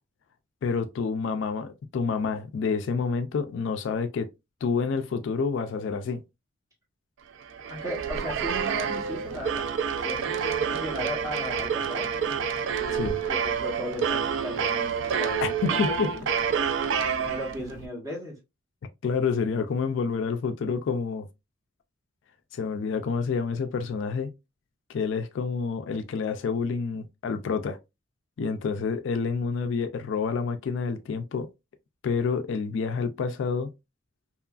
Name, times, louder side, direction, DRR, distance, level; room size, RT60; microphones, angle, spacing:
voice 1, 0.6-4.3 4.6-6.2 10.4-10.5 12.9-13.1 15.4-16.1 19.0-21.3 22.5-24.3 24.9-27.8 28.4-31.5 32.0-33.7, left 5 dB, 65° left, 0.3 m, -28 dB
sound 1, 7.4-17.9, right 6 dB, 65° right, 0.3 m, -28 dB
voice 2, 7.7-9.6 10.0-12.0 12.8-16.1 17.2-18.4, equal, 15° right, 1.0 m, -36 dB
2.9 x 2.4 x 2.3 m
head